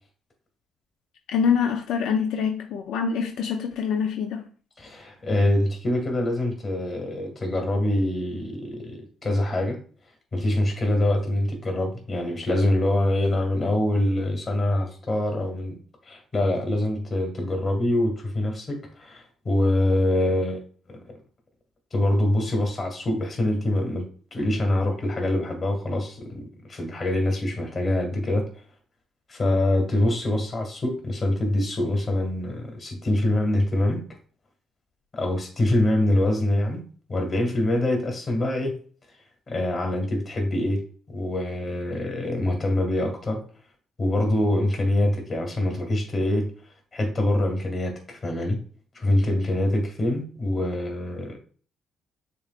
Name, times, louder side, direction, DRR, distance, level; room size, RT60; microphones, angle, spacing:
voice 1, 1.3-4.4, left 6 dB, 85° left, 0.5 m, -25 dB
voice 2, 4.8-9.8 10.3-15.8 16.1-20.6 20.9-21.2 21.9-28.4 29.3-34.0 35.1-36.8 37.1-38.7 39.5-40.8 41.1-43.4 44.0-46.5 46.9-48.6 49.0-51.4, left 1 dB, 40° left, 1.9 m, -24 dB
6.7 x 3.0 x 2.5 m
cardioid pair, 90°, 0 cm